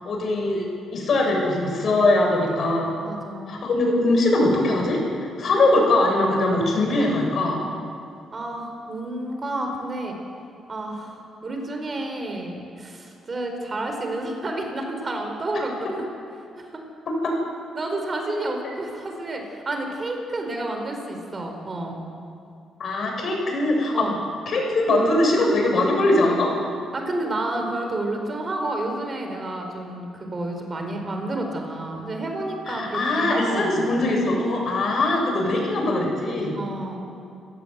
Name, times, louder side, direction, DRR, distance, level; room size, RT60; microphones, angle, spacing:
voice 1, 0.0-0.7 0.9-2.9 3.5-7.6 17.1-17.3 22.8-24.1 24.5-26.5 32.7-36.5, left 2 dB, 55° left, 1 dB, 7.1 m, -21 dB
voice 2, 3.0-3.6 8.3-10.2 10.7-16.1 16.6-16.8 17.7-22.0 23.9-24.1 26.9-34.0 35.8-36.1 36.6-37.0, right 2 dB, 30° right, 3 dB, 4.5 m, -30 dB
29.0 x 17.0 x 8.2 m, 2.4 s
cardioid pair, 110°, 0 cm